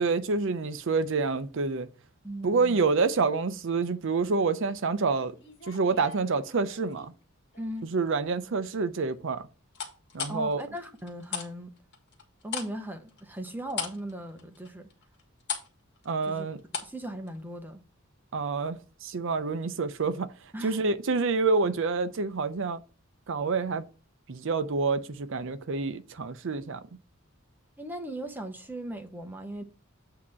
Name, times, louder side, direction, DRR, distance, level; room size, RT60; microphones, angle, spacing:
voice 1, 0.0-1.9 2.4-5.3 5.7-7.1 7.8-9.4 10.1-10.6 16.1-16.6 18.3-20.3 20.6-22.8 23.3-23.9 24.3-26.8, right 4 dB, 65° right, 0.6 m, -27 dB
voice 2, 2.2-2.8 7.6-7.9 10.3-11.7 12.4-14.9 16.2-16.5 16.8-17.8 20.5-20.9 27.8-29.6, right 1 dB, 10° right, 0.7 m, -38 dB
sound 1, 5.4-7.1 7.5-8.0 9.7-11.5 11.8-17.0 17.3-17.4, left 6 dB, 55° left, 1.8 m, -38 dB
8.4 x 2.9 x 6.2 m
head